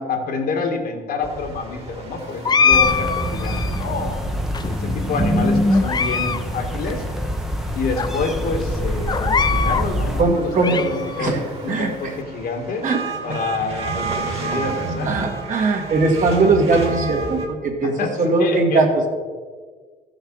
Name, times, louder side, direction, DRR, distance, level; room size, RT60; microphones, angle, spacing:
voice 1, 0.0-4.2 4.7-7.0 7.7-12.8 13.2-15.1 17.8-19.1, left 4 dB, 65° left, 3 dB, 1.8 m, -27 dB
sound 1, 1.2-17.5, right 3 dB, 35° right, 2.1 m, -33 dB
sound 2, 2.4-3.9 4.5-5.2 5.7-6.4 6.7-6.8 7.5-7.6 8.0-8.1 9.1-9.9 10.3-11.3, left 6 dB, 25° left, 0.5 m, -22 dB
sound 3, 2.7-10.2, equal, ahead, 0.9 m, -24 dB
voice 2, 10.2-10.8 11.2-11.4 11.7-12.1 12.8-13.4 15.0-19.1, right 3 dB, 50° right, 1 dB, 2.0 m, -20 dB
13.5 x 6.5 x 4.8 m, 1.6 s
cardioid pair, 110°, 17 cm